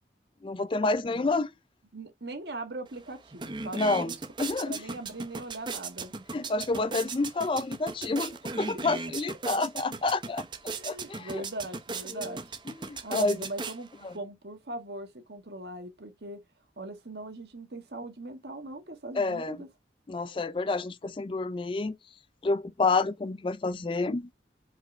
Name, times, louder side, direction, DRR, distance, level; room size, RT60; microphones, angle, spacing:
voice 1, 0.4-1.5 3.7-4.1 4.4-4.8 6.3-10.4 10.8-11.4 12.1-12.3 12.9-13.4 14.0-14.1 19.1-19.6 20.1-22.0 22.4-24.3, left 3 dB, 30° left, 0.4 m, -29 dB
voice 2, 1.9-4.1 4.7-6.1 9.5-9.6 10.7-12.6 13.0-16.4 16.8-19.7, right 2 dB, 70° right, 1.5 m, -40 dB
sound 1, 2.9-3.0 3.3-14.2, right 4 dB, 25° right, 0.8 m, -38 dB
5.2 x 4.2 x 4.3 m
head